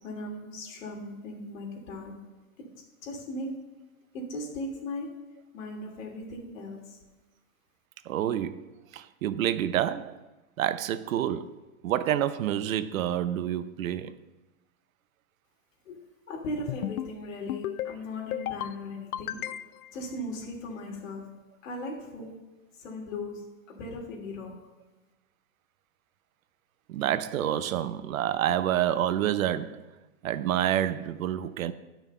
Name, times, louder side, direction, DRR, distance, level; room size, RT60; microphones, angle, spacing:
voice 1, 0.0-2.1 3.0-3.5 4.1-5.1 5.5-7.0 15.8-16.0 16.3-19.6 19.9-21.3 21.6-22.3 22.8-23.4 23.7-24.5, left 1 dB, 65° left, 3.0 m, -38 dB
voice 2, 8.1-10.2 10.6-11.6 11.8-14.1 26.9-29.8 30.2-31.7, right 11 dB, 70° right, 0.7 m, -28 dB
sound 1, 16.7-17.1 17.5-17.9 18.3-18.7 19.1-19.9, left 13 dB, 80° left, 0.5 m, -33 dB
11.0 x 6.2 x 5.4 m
supercardioid pair, 170°, 42 cm